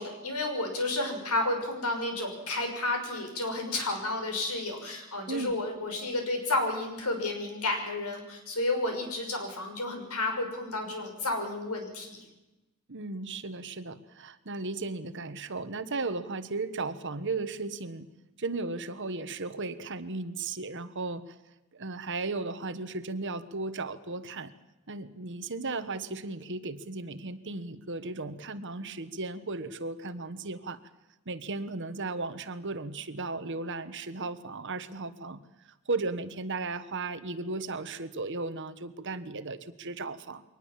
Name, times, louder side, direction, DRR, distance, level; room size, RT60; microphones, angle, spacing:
voice 1, 0.0-12.2, left 2 dB, 90° left, 4 dB, 6.1 m, -31 dB
voice 2, 5.3-5.6 12.9-18.1 18.4-21.4 21.7-24.5 24.9-30.8 31.3-35.4 35.9-40.4, right 3 dB, 55° right, 12 dB, 1.4 m, -35 dB
23.5 x 19.0 x 7.5 m, 1.0 s
head